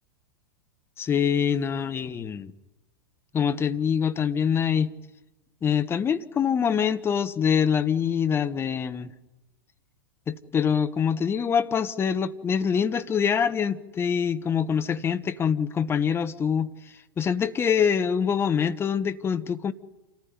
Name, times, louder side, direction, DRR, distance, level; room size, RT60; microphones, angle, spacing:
voice 1, 1.0-2.5 3.3-4.9 5.6-9.1 10.3-16.7 17.2-19.7, left 7 dB, 20° left, 12 dB, 1.2 m, -25 dB
27.5 x 15.0 x 9.5 m, 1.1 s
figure-of-eight pair, 95°, 12 cm